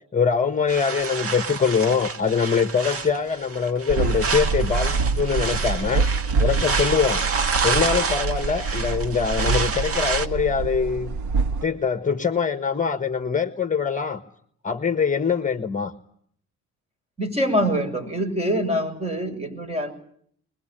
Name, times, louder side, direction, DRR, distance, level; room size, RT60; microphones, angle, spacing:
voice 1, 0.1-7.2 7.5-11.1 11.6-14.2 14.6-15.9, left 6 dB, 25° left, 10 dB, 1.3 m, -23 dB
sound 1, 0.7-10.3, right 5 dB, 50° right, 1.9 m, -28 dB
sound 2, 3.9-11.6, right 4 dB, 70° right, 2.0 m, -26 dB
voice 2, 17.2-19.9, equal, 20° right, 6 dB, 6.9 m, -24 dB
23.5 x 21.5 x 8.9 m, 0.64 s
cardioid pair, 90°, 30 cm